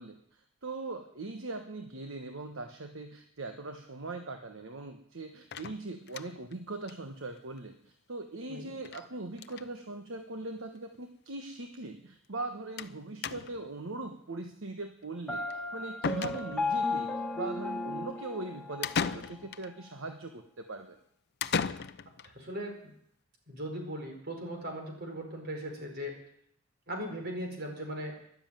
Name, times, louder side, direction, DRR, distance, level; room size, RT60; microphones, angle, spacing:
voice 1, 0.0-17.1 17.3-21.0, right 2 dB, 65° right, 6 dB, 1.2 m, -40 dB
sound 1, 5.5-6.5 6.9-7.0 7.3-7.4 7.6-7.7 8.9-9.1 9.3-9.7 10.6-10.7 10.9-11.0 12.8-13.0 13.2-13.7 15.5-15.6 16.0-16.8 18.8-19.7 21.4-22.3, left 5 dB, 50° left, 0.6 m, -35 dB
Piano, 15.3-19.1, left 3 dB, 5° left, 1.6 m, -34 dB
voice 2, 22.2-22.9 23.5-26.2 26.9-28.2, equal, 50° right, 2 dB, 4.9 m, -38 dB
13.0 x 11.5 x 9.1 m, 0.68 s
head